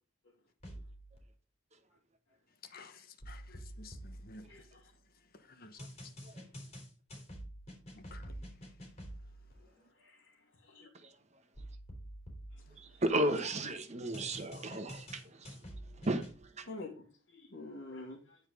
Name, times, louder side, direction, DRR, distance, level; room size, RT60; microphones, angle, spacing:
sound 1, 0.6-1.2 3.2-5.1 5.8-9.5 11.6-13.4 14.1-16.4, equal, 35° left, 4.0 m, -48 dB
voice 1, 2.6-4.5 5.5-6.1 8.0-8.3 12.7-12.8, left 3 dB, 50° left, 1.0 m, -53 dB
voice 2, 4.5-4.8 10.0-10.2 10.6-10.9 13.1-13.5 16.7-16.9 17.3-18.4, left 2 dB, 75° left, 2.5 m, -45 dB
voice 3, 12.8-15.2 16.0-16.2 16.6-16.7, right 1 dB, 35° right, 1.1 m, -33 dB
10.5 x 4.9 x 5.2 m
head